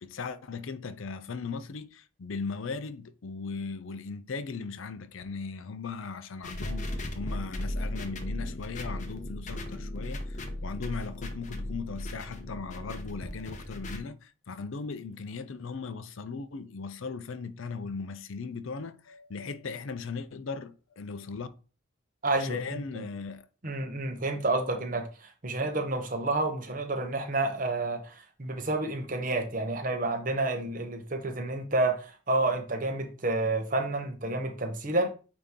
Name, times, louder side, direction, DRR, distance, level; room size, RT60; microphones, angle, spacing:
voice 1, 0.0-21.5 22.4-23.5, left 4 dB, 75° left, 0.5 m, -38 dB
sound 1, 6.4-14.0, left 1 dB, 35° left, 0.7 m, -36 dB
voice 2, 22.2-22.8 23.6-35.1, right 2 dB, 40° right, 1.0 m, -29 dB
8.7 x 2.9 x 3.7 m
head